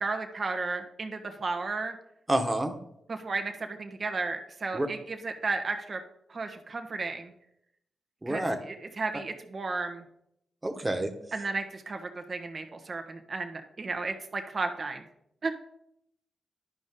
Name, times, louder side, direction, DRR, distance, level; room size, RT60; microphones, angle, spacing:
voice 1, 0.0-2.0 3.1-6.0 6.3-7.3 8.3-10.0 11.3-15.0 15.4-15.5, right 3 dB, 50° right, 5 dB, 1.2 m, -34 dB
voice 2, 2.3-2.7 4.7-4.9 8.2-8.6 10.6-11.1, right 1 dB, 20° right, 5 dB, 1.5 m, -28 dB
11.5 x 5.2 x 3.8 m, 0.77 s
supercardioid pair, 45°, 0 cm